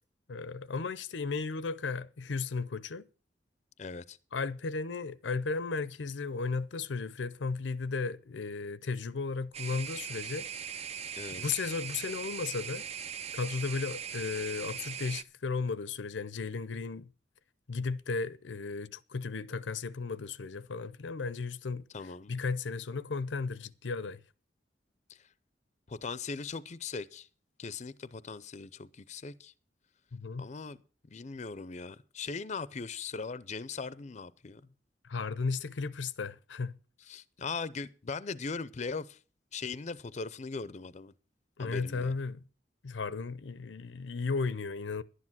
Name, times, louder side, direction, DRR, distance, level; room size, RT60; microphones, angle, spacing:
voice 1, 0.3-3.1 4.3-10.5 11.3-12.9 13.3-17.1 17.7-21.9 22.3-24.2 30.1-30.5 35.0-36.7 41.6-42.4 42.8-45.0, left 4 dB, 85° left, 0.6 m, -35 dB
voice 2, 3.8-4.2 11.2-11.4 21.9-22.3 25.1-25.3 25.9-27.3 27.6-29.5 30.4-30.8 31.1-34.6 37.1-39.2 39.5-41.1 41.6-42.1, left 4 dB, 40° left, 0.5 m, -39 dB
sound 1, 9.5-15.2, right 7 dB, 35° right, 0.5 m, -40 dB
11.5 x 9.8 x 6.0 m
head